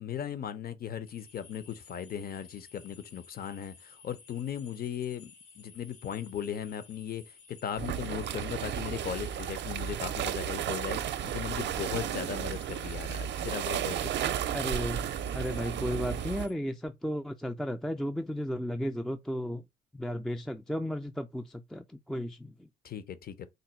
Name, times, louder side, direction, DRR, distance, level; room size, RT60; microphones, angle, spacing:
voice 1, 0.0-14.4 22.8-23.5, left 9 dB, 50° left, 0.7 m, -37 dB
sound 1, 1.0-16.5, left 5 dB, 80° left, 1.7 m, -55 dB
sound 2, 7.8-16.5, right 9 dB, 65° right, 0.5 m, -33 dB
voice 2, 14.5-19.6 19.9-22.7, equal, ahead, 0.3 m, -34 dB
3.9 x 2.2 x 4.3 m
cardioid pair, 90°, 20 cm